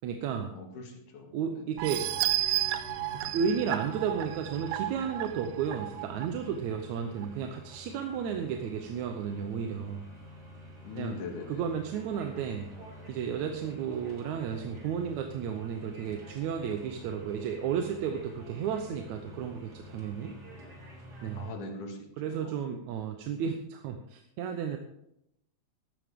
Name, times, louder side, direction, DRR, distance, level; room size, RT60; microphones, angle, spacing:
voice 1, 0.0-0.5 1.3-2.1 3.2-10.0 11.0-11.2 11.5-12.7 13.1-20.4 21.2-21.5 22.2-24.8, right 7 dB, 70° right, 5 dB, 2.1 m, -33 dB
voice 2, 0.5-1.6 10.8-11.6 21.3-22.0 22.2-22.5, left 4 dB, 80° left, 2 dB, 3.4 m, -41 dB
sound 1, 1.8-21.5, equal, 30° right, 3.1 m, -48 dB
sound 2, 1.8-6.3 6.7-6.8 7.2-7.3, right 14 dB, 90° right, 2.2 m, -32 dB
14.5 x 12.5 x 3.7 m, 0.80 s
omnidirectional pair, 3.6 m